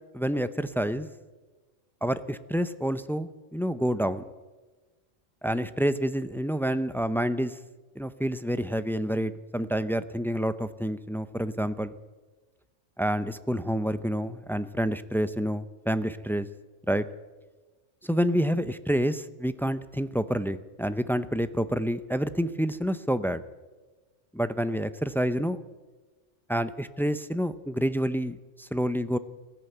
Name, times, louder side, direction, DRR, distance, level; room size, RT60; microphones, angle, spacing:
voice 1, 0.1-1.1 2.0-4.2 5.4-7.6 8.0-11.9 13.0-16.5 16.9-17.1 18.0-23.4 24.3-25.6 26.5-29.2, equal, 5° left, 12 dB, 0.4 m, -28 dB
20.0 x 15.0 x 9.1 m, 1.3 s
omnidirectional pair, 1.3 m